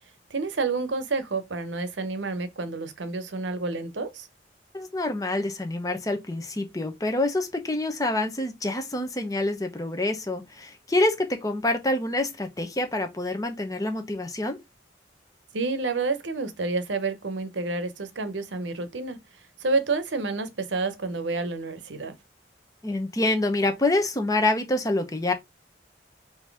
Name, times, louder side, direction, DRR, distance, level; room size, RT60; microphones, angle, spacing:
voice 1, 0.3-4.3 15.5-19.2 19.6-22.1, right 3 dB, 80° right, 0.8 m, -29 dB
voice 2, 4.7-14.6 22.8-25.3, left 2 dB, 20° left, 0.8 m, -26 dB
3.8 x 2.8 x 4.7 m
head